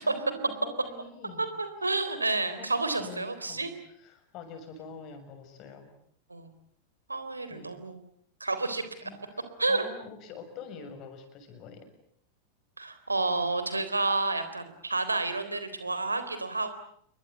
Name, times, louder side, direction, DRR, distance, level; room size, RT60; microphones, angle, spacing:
voice 1, 0.0-1.5 2.6-5.9 7.5-7.8 9.0-11.9, left 4 dB, 40° left, 8 dB, 6.8 m, -46 dB
voice 2, 1.4-3.7 6.3-6.5 7.1-8.0 8.4-9.1 9.6-9.8 12.8-16.7, right 3 dB, 80° right, 11 dB, 3.7 m, -30 dB
28.5 x 23.0 x 8.2 m, 0.66 s
figure-of-eight pair, 90°, 0 cm